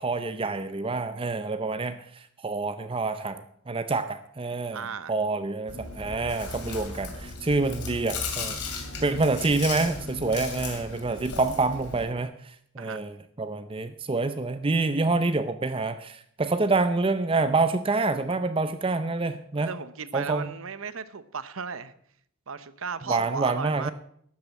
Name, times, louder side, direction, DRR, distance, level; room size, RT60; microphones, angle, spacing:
voice 1, 0.0-4.8 5.1-19.7 20.1-20.5 23.1-23.9, right 3 dB, 25° right, 10 dB, 0.5 m, -27 dB
voice 2, 4.7-5.1 8.9-9.4 12.8-13.0 19.6-21.9 22.5-23.9, right 5 dB, 65° right, 14 dB, 0.8 m, -36 dB
Chewing mastication, 5.7-12.0, left 4 dB, 85° left, 2.7 m, -36 dB
12.5 x 8.6 x 7.0 m, 0.66 s
head